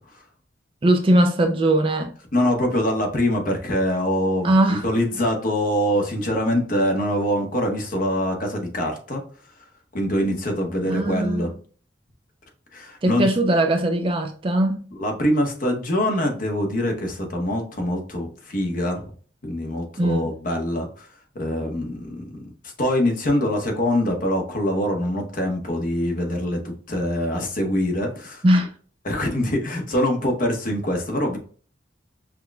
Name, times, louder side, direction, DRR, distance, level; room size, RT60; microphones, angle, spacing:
voice 1, 0.8-2.1 4.4-4.9 10.8-11.5 13.0-14.9 20.0-20.3 28.4-28.7, right 1 dB, 30° right, 0.4 m, -20 dB
voice 2, 2.3-9.2 9.9-11.5 12.7-13.3 14.9-19.1 19.4-21.1 21.3-22.5 22.8-28.4 29.0-31.4, left 1 dB, 45° left, 0.8 m, -24 dB
5.9 x 2.1 x 2.3 m
head